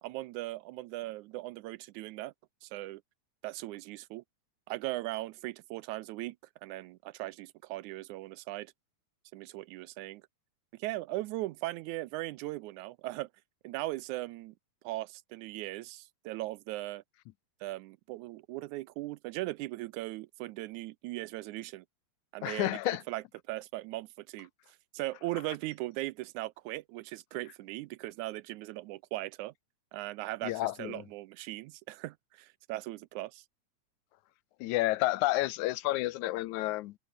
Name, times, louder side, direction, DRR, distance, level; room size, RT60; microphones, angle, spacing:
voice 1, 0.0-2.3 2.6-3.0 3.4-4.2 4.7-6.4 6.6-8.7 9.3-10.2 10.8-13.3 13.6-14.6 14.8-17.0 17.6-21.9 22.3-24.5 24.9-29.5 29.9-33.4, right 18 dB, 85° right, 2.0 m, -39 dB
voice 2, 22.4-23.0 30.4-31.0 34.6-37.0, left 17 dB, 80° left, 2.0 m, -30 dB
omnidirectional pair, 3.5 m